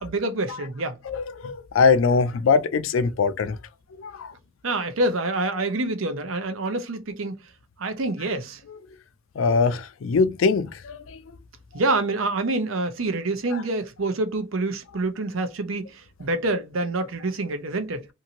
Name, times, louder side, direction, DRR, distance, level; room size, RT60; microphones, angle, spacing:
voice 1, 0.0-1.0 4.6-7.4 7.8-8.6 11.7-18.1, right 2 dB, 75° right, 0.7 m, -27 dB
voice 2, 1.1-3.6 4.0-4.3 9.4-11.0, left 5 dB, 75° left, 0.4 m, -22 dB
2.7 x 2.6 x 2.8 m
head